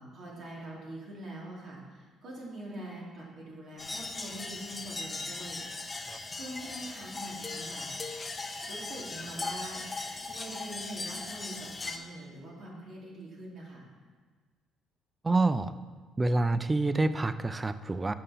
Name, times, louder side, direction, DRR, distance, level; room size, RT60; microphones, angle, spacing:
voice 1, 0.0-6.0 6.3-7.9 8.6-9.8 10.2-13.8, right 1 dB, 55° right, -3 dB, 2.4 m, -44 dB
sound 1, 3.8-12.0, left 3 dB, 20° left, 0.7 m, -38 dB
voice 2, 15.2-15.7 16.2-18.1, right 2 dB, 20° right, 13 dB, 0.4 m, -27 dB
6.7 x 5.6 x 5.6 m, 1.5 s
cardioid pair, 110°, 0 cm